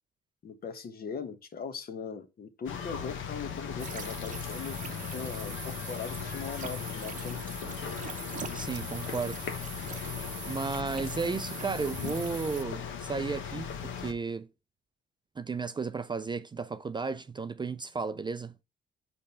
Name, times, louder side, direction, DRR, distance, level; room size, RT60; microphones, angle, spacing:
voice 1, 0.4-4.8 5.1-7.6, left 6 dB, 50° left, 1.1 m, -40 dB
sound 1, 2.7-14.1, left 7 dB, 75° left, 1.1 m, -38 dB
sound 2, 3.8-12.6, right 6 dB, 40° right, 0.8 m, -43 dB
voice 2, 8.5-9.5 10.5-14.5 15.4-18.5, right 4 dB, 25° right, 0.4 m, -34 dB
5.1 x 4.4 x 5.6 m
cardioid pair, 90°, 20 cm